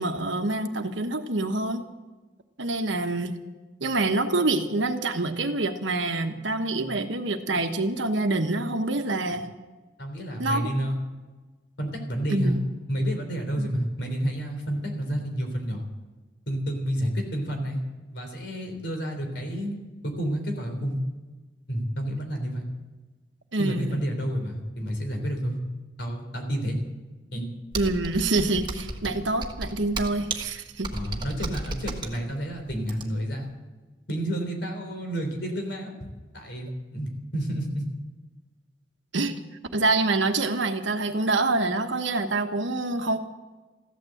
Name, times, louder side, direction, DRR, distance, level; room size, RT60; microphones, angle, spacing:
voice 1, 0.0-1.8 2.6-3.3 3.8-9.5 10.4-10.6 12.3-12.6 13.6-13.7 23.5-24.0 27.7-30.9 39.1-39.3 39.7-43.2, right 2 dB, 80° right, 7 dB, 1.3 m, -26 dB
voice 2, 10.0-11.0 11.8-12.6 12.9-15.8 16.5-17.8 18.1-19.8 20.0-21.0 21.7-22.6 23.6-25.6 26.0-26.8 27.3-27.5 30.9-33.5 34.1-35.9 36.3-37.8, equal, 65° left, 3 dB, 3.8 m, -30 dB
Computer keyboard, 27.7-33.3, right 2 dB, 25° right, 1.5 m, -34 dB
15.0 x 12.0 x 7.9 m, 1.2 s
head